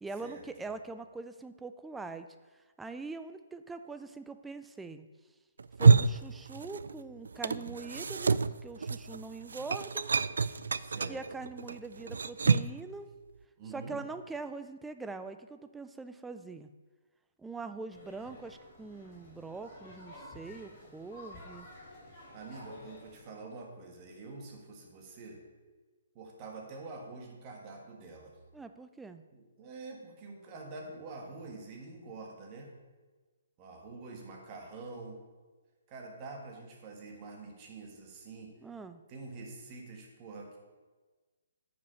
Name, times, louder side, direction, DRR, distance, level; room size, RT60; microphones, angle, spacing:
voice 1, 0.0-2.3 2.8-5.1 5.8-10.1 11.1-13.1 13.7-16.7 17.4-21.7 28.5-29.2 38.6-39.0, right 3 dB, 5° right, 10 dB, 0.3 m, -43 dB
sound 1, 5.6-7.0 7.3-12.8, right 5 dB, 90° right, 0.3 m, -27 dB
voice 2, 10.7-11.2 13.6-14.0 22.3-25.4 26.1-28.4 29.3-32.7 33.6-35.2 35.9-38.5 39.1-40.6, right 3 dB, 25° right, 0 dB, 1.5 m, -46 dB
sound 2, 17.9-23.2, left 1 dB, 30° left, 2.8 m, -52 dB
9.4 x 5.5 x 5.4 m, 1.3 s
hypercardioid pair, 165°, 0 cm